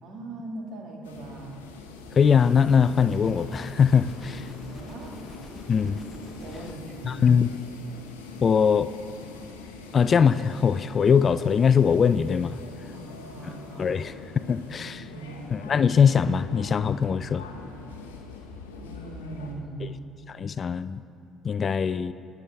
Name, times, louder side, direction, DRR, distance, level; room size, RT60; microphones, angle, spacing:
voice 1, 0.0-1.7 4.6-5.1 6.4-7.2 12.9-14.0 14.7-15.5 18.8-20.0, right 2 dB, 60° right, 1 dB, 2.0 m, -40 dB
sound 1, 1.0-19.5, left 3 dB, 85° left, 0.8 m, -43 dB
voice 2, 2.1-4.5 5.7-6.0 7.0-7.5 8.4-8.9 9.9-12.6 13.4-13.5 13.8-14.1 14.5-15.0 15.5-17.5 19.8-19.9 20.4-21.0 21.4-22.1, left 6 dB, 45° left, 14 dB, 0.3 m, -21 dB
sound 2, 2.4-6.8, left 1 dB, 10° left, 0.8 m, -46 dB
20.0 x 7.1 x 3.4 m, 2.7 s
hypercardioid pair, 55°, 0 cm